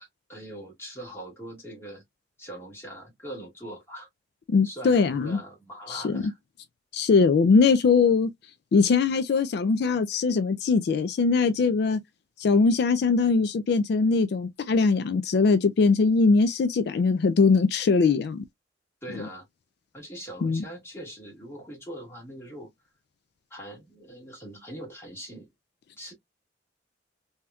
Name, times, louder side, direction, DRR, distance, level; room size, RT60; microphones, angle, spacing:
voice 1, 0.0-2.0 2.4-4.1 4.6-6.4 19.0-19.4 19.9-22.7 23.5-25.5 26.0-26.1, right 1 dB, 15° left, 1.7 m, -41 dB
voice 2, 4.5-5.4 5.9-6.2 6.9-8.3 8.7-12.0 12.4-18.4 19.2-19.3 20.4-20.6, left 4 dB, 60° left, 0.3 m, -21 dB
3.4 x 2.8 x 2.2 m
head